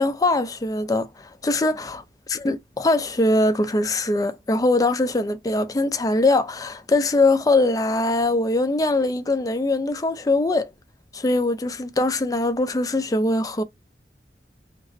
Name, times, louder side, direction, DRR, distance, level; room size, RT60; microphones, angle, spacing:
voice 1, 0.0-10.7 11.1-13.6, left 2 dB, 20° left, 0.4 m, -22 dB
2.9 x 2.9 x 2.6 m
head